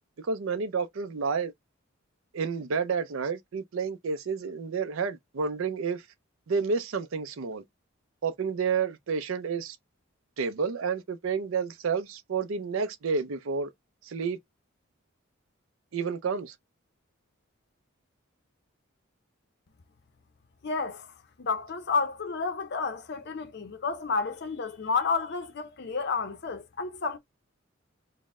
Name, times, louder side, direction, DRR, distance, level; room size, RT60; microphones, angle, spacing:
voice 1, 0.2-1.5 2.3-6.1 6.5-7.6 8.2-9.8 10.4-13.7 14.0-14.4 15.9-16.5, right 5 dB, 75° right, 0.5 m, -30 dB
voice 2, 20.6-21.1 21.4-27.2, left 4 dB, 55° left, 0.5 m, -30 dB
4.1 x 2.1 x 3.5 m
head